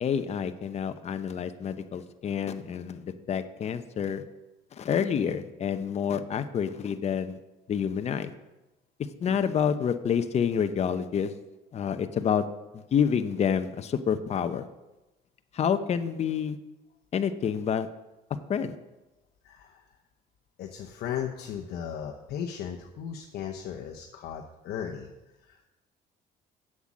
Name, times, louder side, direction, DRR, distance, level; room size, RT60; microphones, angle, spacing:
voice 1, 0.0-4.2 4.8-7.4 7.7-8.3 9.2-11.3 11.7-12.4 12.7-14.6 15.5-16.6 17.1-17.9 18.5-18.7, left 7 dB, 40° left, 9 dB, 0.7 m, -28 dB
voice 2, 19.4-19.8 20.6-25.1 25.4-25.7, left 8 dB, 70° left, 1 dB, 0.9 m, -36 dB
8.0 x 7.5 x 6.3 m, 1.0 s
cardioid pair, 110°, 17 cm